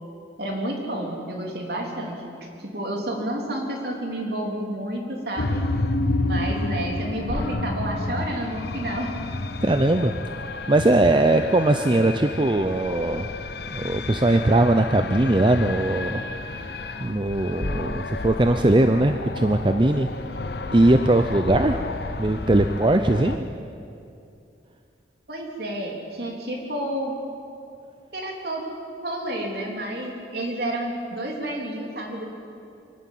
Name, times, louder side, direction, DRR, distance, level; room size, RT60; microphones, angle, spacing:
voice 1, 0.4-5.7 6.2-9.1 25.3-27.1 28.1-32.3, right 1 dB, 55° right, 0 dB, 3.6 m, -30 dB
sound 1, 5.4-23.4, left 2 dB, 60° left, 0.8 m, -30 dB
voice 2, 9.6-10.1 10.7-13.3 13.7-16.2 16.5-16.7 17.0-20.1 20.7-21.8 22.2-23.5, right 2 dB, 25° right, 7 dB, 0.6 m, -20 dB
25.0 x 11.5 x 9.3 m, 2.6 s
head